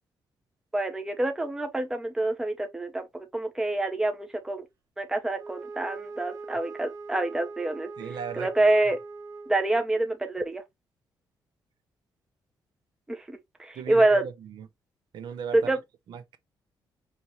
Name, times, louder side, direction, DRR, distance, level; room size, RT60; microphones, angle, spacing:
voice 1, 0.7-4.6 5.0-7.9 8.4-9.0 9.5-10.6 13.1-14.2 15.5-15.8, right 2 dB, 5° right, 0.6 m, -26 dB
Wind instrument woodwind instrument, 5.3-9.9, right 4 dB, 40° right, 1.0 m, -41 dB
voice 2, 8.0-8.5 13.8-14.7 15.1-15.6 16.1-16.4, right 7 dB, 65° right, 0.7 m, -37 dB
5.1 x 2.9 x 2.9 m
cardioid pair, 170°, 8 cm